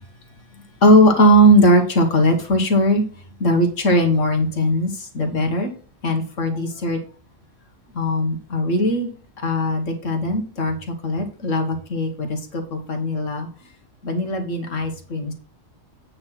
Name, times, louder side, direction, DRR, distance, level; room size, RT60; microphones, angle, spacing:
voice 1, 0.8-3.0 3.4-5.7 6.0-7.0 8.0-9.1 9.4-10.8 11.0-13.5 14.0-15.3, equal, 75° left, 4 dB, 1.9 m, -19 dB
8.7 x 4.2 x 5.8 m, 0.41 s
omnidirectional pair, 1.3 m